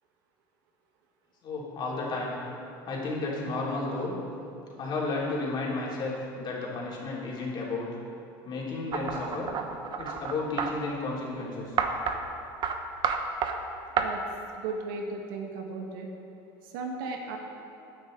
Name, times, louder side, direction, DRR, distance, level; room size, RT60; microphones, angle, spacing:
voice 1, 1.4-2.3 2.9-4.2 4.8-7.9 8.4-9.5 10.0-11.7, left 3 dB, 40° left, -4 dB, 3.3 m, -32 dB
sound 1, 8.9-10.7 11.8-12.2 12.6-12.8 13.0-13.5 14.0-14.1, right 7 dB, 40° right, 1.0 m, -29 dB
voice 2, 14.5-16.1 16.6-17.4, right 3 dB, 80° right, 2 dB, 1.8 m, -35 dB
14.5 x 10.0 x 4.0 m, 2.7 s
supercardioid pair, 120°, 11 cm